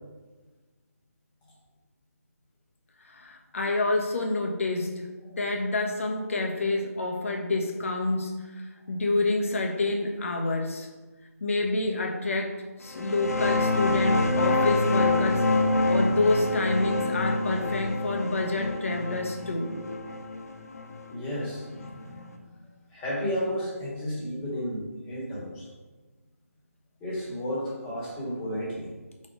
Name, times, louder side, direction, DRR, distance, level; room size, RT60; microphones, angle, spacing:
voice 1, 3.0-5.1 5.3-10.9 11.4-15.5 15.9-19.8 21.8-22.2, left 2 dB, 55° left, 2 dB, 1.2 m, -28 dB
sound 1, 12.9-22.2, left 2 dB, 75° left, 0.8 m, -27 dB
voice 2, 21.1-21.7 22.9-25.7 27.0-28.9, equal, 10° left, -7 dB, 1.6 m, -32 dB
4.4 x 4.3 x 5.2 m, 1.3 s
figure-of-eight pair, 165°, 8 cm